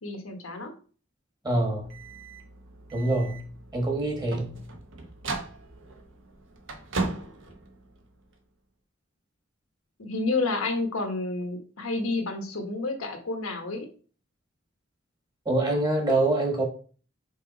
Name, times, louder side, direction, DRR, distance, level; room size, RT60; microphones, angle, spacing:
voice 1, 0.0-0.7 10.0-13.9, left 3 dB, 80° left, 1.2 m, -30 dB
voice 2, 1.4-1.8 2.9-3.4 3.7-4.5 15.4-16.6, right 2 dB, 20° right, 1.4 m, -25 dB
sound 1, 1.8-8.4, right 3 dB, 65° right, 1.0 m, -37 dB
5.4 x 4.3 x 4.0 m
head